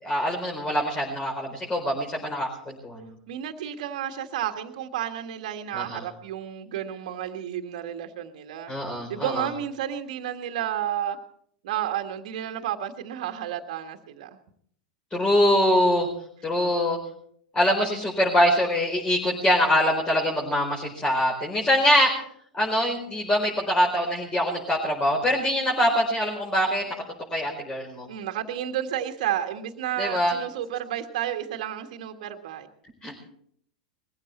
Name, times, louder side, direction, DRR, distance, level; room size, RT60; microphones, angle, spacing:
voice 1, 0.0-3.1 5.7-6.0 8.7-9.5 15.1-16.1 16.4-17.0 17.5-22.2 22.5-26.9 27.3-28.1 30.0-30.3 33.0-33.3, equal, 20° left, -1 dB, 4.5 m, -24 dB
voice 2, 3.3-8.7 9.1-11.2 11.6-14.3 28.1-32.7, right 10 dB, 65° right, 5 dB, 1.6 m, -31 dB
21.0 x 15.5 x 4.3 m, 0.65 s
hypercardioid pair, 95°, 4 cm